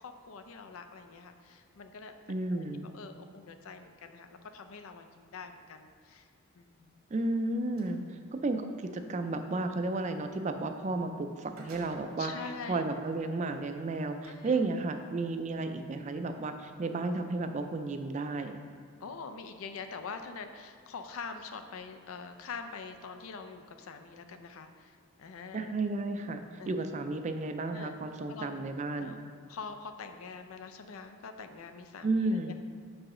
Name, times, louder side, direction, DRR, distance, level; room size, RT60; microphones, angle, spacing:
voice 1, 0.0-6.3 6.6-7.0 12.2-12.8 14.3-14.6 16.8-17.0 19.0-25.8 26.6-26.7 27.7-27.9 28.3-28.5 29.0-29.2 29.5-32.5, left 5 dB, 80° left, 7 dB, 0.4 m, -45 dB
voice 2, 2.3-2.9 7.1-8.0 8.3-12.3 12.7-18.6 25.5-29.2 32.0-32.5, right 2 dB, 35° right, 7 dB, 0.3 m, -33 dB
sound 1, 7.0-8.0 10.8-10.9 11.2-12.3 13.0-13.1 14.0-14.3, right 2 dB, 85° right, 1.2 m, -54 dB
6.2 x 4.8 x 3.7 m, 2.2 s
head